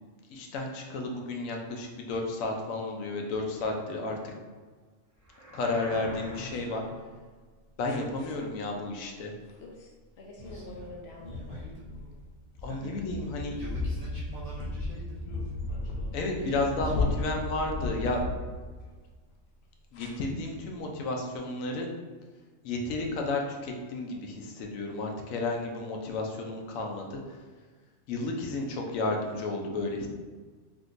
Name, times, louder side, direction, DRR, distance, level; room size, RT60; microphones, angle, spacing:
voice 1, 0.3-4.3 5.5-6.8 7.8-9.3 12.6-13.6 16.1-18.2 19.9-21.9 22.6-27.2 28.1-30.1, left 2 dB, 80° left, 1 dB, 1.0 m, -32 dB
sound 1, 5.2-6.8, equal, 30° right, 1.0 m, -43 dB
sound 2, 6.0-7.0 7.8-8.3 9.6-9.9 10.2-19.0 20.0-20.1, left 2 dB, 65° left, 0.7 m, -35 dB
voice 2, 10.4-11.9 12.7-12.9 13.4-15.2 16.4-17.3, right 2 dB, 75° right, -6 dB, 0.3 m, -45 dB
3.6 x 2.6 x 2.5 m, 1.4 s
omnidirectional pair, 1.4 m